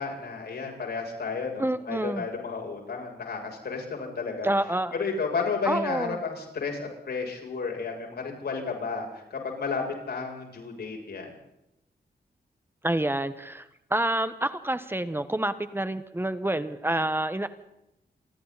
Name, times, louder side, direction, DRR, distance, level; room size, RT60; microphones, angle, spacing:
voice 1, 0.0-4.5 5.0-11.3, left 4 dB, 75° left, 1 dB, 7.6 m, -32 dB
voice 2, 1.6-2.2 4.4-4.9 5.6-6.2 12.8-17.5, right 1 dB, 15° right, 11 dB, 1.3 m, -28 dB
29.0 x 24.0 x 4.2 m, 0.84 s
wide cardioid pair, 100°, 17 cm